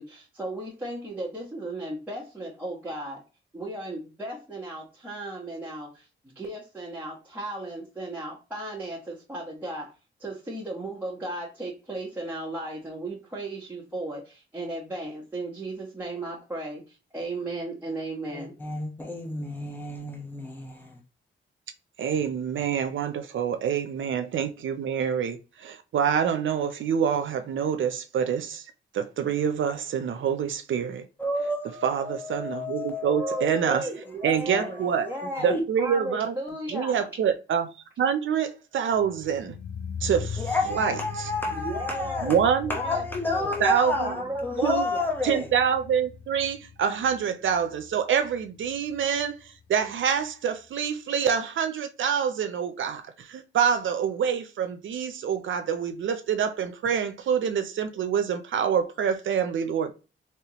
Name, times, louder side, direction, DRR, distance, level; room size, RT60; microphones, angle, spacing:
voice 1, 0.0-3.2 3.5-6.1 6.3-9.9 10.2-18.5 33.2-37.1 41.5-43.6 44.0-45.1, right 1 dB, 10° right, 1.2 m, -35 dB
voice 2, 18.3-21.0 31.2-34.0 34.5-34.7 35.3-35.6 40.4-42.3 42.7-45.5, left 2 dB, 10° left, 1.0 m, -30 dB
voice 3, 22.0-31.0 31.8-33.9 34.2-35.1 35.4-36.3 36.7-37.7 38.0-39.5 40.0-41.3 42.2-42.7 43.6-44.1 44.6-44.9 45.2-59.9, right 7 dB, 70° right, 0.5 m, -26 dB
sound 1, 38.9-49.9 50.2-50.3, left 6 dB, 50° left, 0.4 m, -40 dB
3.4 x 3.0 x 2.9 m
cardioid pair, 75°, 21 cm